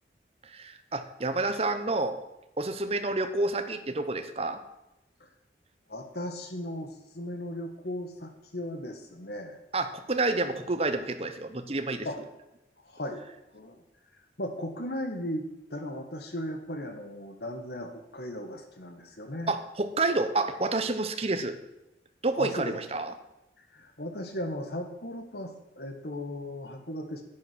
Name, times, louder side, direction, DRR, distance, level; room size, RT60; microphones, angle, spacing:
voice 1, 0.4-2.2 2.6-4.6 9.7-12.1 19.5-21.6 22.2-23.1, right 2 dB, 35° right, 9 dB, 1.0 m, -29 dB
voice 2, 5.9-9.6 12.1-12.3 12.8-13.3 13.5-13.8 14.4-19.5 22.4-22.7 23.6-27.2, left 1 dB, 65° left, 5 dB, 1.8 m, -37 dB
11.0 x 8.5 x 6.3 m, 0.92 s
head